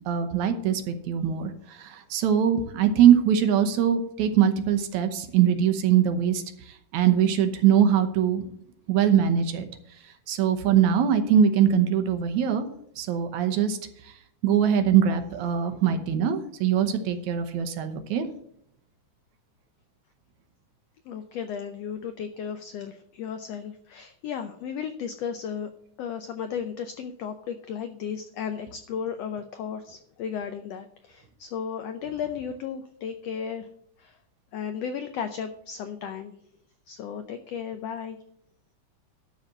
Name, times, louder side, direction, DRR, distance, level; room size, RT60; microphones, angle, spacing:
voice 1, 0.1-6.4 6.9-8.4 8.9-9.7 10.3-12.7 13.0-13.8 14.4-18.3, right 9 dB, 70° right, 8 dB, 2.1 m, -22 dB
voice 2, 21.1-25.7 26.0-33.7 34.0-34.2 34.5-36.4 36.9-38.2, left 7 dB, 85° left, 8 dB, 1.4 m, -34 dB
12.5 x 4.2 x 7.6 m, 0.68 s
omnidirectional pair, 3.7 m